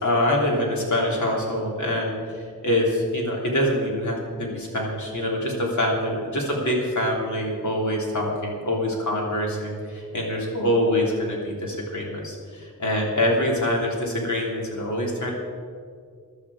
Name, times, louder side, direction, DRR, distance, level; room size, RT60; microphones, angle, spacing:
voice 1, 0.0-15.3, left 1 dB, 60° left, -2 dB, 3.3 m, -25 dB
15.5 x 11.5 x 5.0 m, 2.1 s
wide cardioid pair, 110°, 33 cm